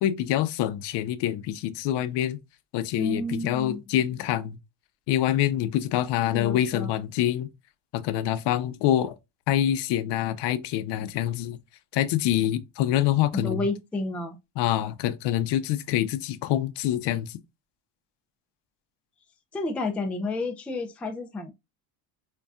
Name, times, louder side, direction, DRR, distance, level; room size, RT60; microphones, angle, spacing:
voice 1, 0.0-2.4 2.7-4.6 5.1-7.5 7.9-9.2 9.5-11.6 11.9-13.7 14.6-17.4, left 12 dB, 70° left, 0.6 m, -26 dB
voice 2, 3.0-3.8 6.3-6.9 13.3-14.4 19.5-21.5, left 2 dB, 5° left, 0.3 m, -30 dB
5.3 x 2.3 x 2.3 m
cardioid pair, 115°, 44 cm